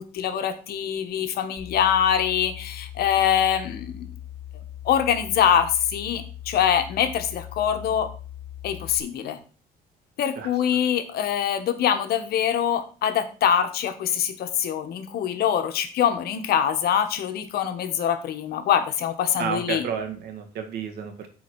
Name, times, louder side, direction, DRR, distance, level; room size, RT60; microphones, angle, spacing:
voice 1, 0.0-4.1 4.8-8.1 8.6-9.4 10.2-19.9, left 9 dB, 70° left, 8 dB, 1.3 m, -24 dB
sound 1, 1.6-9.0, left 12 dB, ahead, 2.9 m, -40 dB
voice 2, 19.4-21.3, right 6 dB, 75° right, 5 dB, 1.9 m, -31 dB
8.4 x 4.4 x 6.1 m, 0.38 s
cardioid pair, 110°, 17 cm